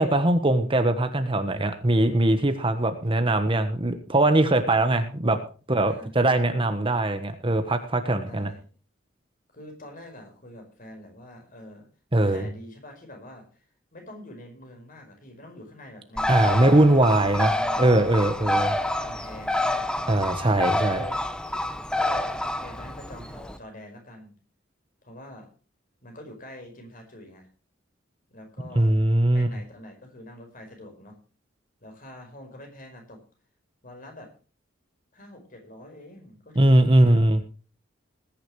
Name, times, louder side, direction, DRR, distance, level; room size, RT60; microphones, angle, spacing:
voice 1, 0.0-5.4 5.7-8.5 12.1-12.5 16.3-18.7 20.1-21.0 28.7-29.5 36.5-37.4, right 1 dB, 25° right, 8 dB, 1.2 m, -21 dB
voice 2, 2.9-3.4 5.8-6.1 8.2-8.7 9.5-11.9 12.2-13.5 13.9-17.9 18.4-18.6 19.0-20.3 20.8-21.2 21.9-24.3 25.0-25.5 26.0-27.5 28.3-29.0 29.3-31.2 31.8-33.2 33.8-34.3 35.1-37.2, left 1 dB, 45° left, 3 dB, 5.2 m, -45 dB
Bird, 16.2-23.6, left 1 dB, 5° left, 0.9 m, -28 dB
20.0 x 10.5 x 3.2 m, 0.37 s
head